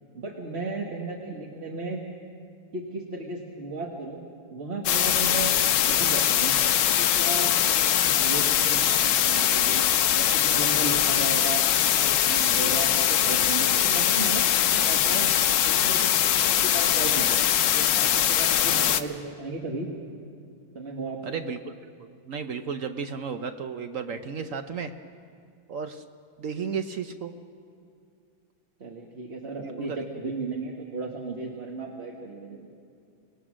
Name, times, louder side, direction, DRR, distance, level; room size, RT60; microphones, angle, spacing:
voice 1, 0.1-2.0 2.7-4.2 4.5-5.5 5.9-6.6 7.0-9.8 10.1-15.3 15.6-17.4 17.7-19.9 20.7-21.2 28.8-32.7, right 3 dB, 35° right, -1 dB, 1.5 m, -35 dB
sound 1, 4.9-19.0, left 10 dB, 75° left, 1.3 m, -22 dB
voice 2, 18.6-19.0 21.2-21.7 22.0-24.9 25.7-26.0 26.4-27.3 29.6-30.1, right 6 dB, 65° right, 8 dB, 0.8 m, -34 dB
25.0 x 19.0 x 6.2 m, 2.4 s
omnidirectional pair, 2.0 m